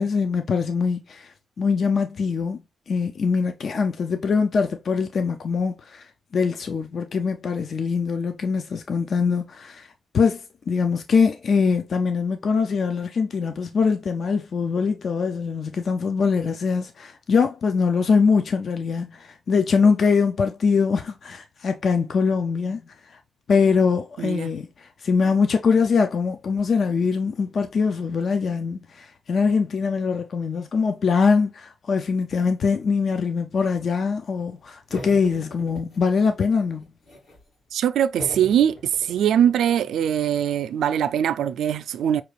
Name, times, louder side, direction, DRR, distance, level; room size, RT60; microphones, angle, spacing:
voice 1, 0.0-6.1 6.3-9.9 10.1-23.2 23.5-36.9, left 5 dB, 50° left, 0.4 m, -23 dB
voice 2, 24.2-24.5 37.7-42.2, right 9 dB, 85° right, 0.3 m, -22 dB
sound 1, 34.9-36.4 36.8-37.5 38.2-41.4, left 1 dB, 70° left, 2.2 m, -42 dB
5.6 x 2.4 x 3.2 m
cardioid pair, 125°, 0 cm